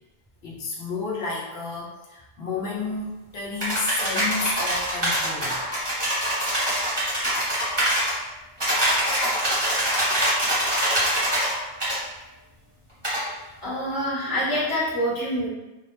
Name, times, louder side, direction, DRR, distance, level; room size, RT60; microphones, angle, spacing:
voice 1, 0.4-5.6, left 3 dB, 80° left, -4 dB, 0.8 m, -31 dB
sound 1, 3.6-8.1 8.6-11.5 11.8-12.0 13.0-13.2, equal, 25° right, 0.9 m, -24 dB
voice 2, 13.2-15.5, equal, 25° left, -9 dB, 0.8 m, -27 dB
2.3 x 2.0 x 2.9 m, 1.0 s
omnidirectional pair, 1.0 m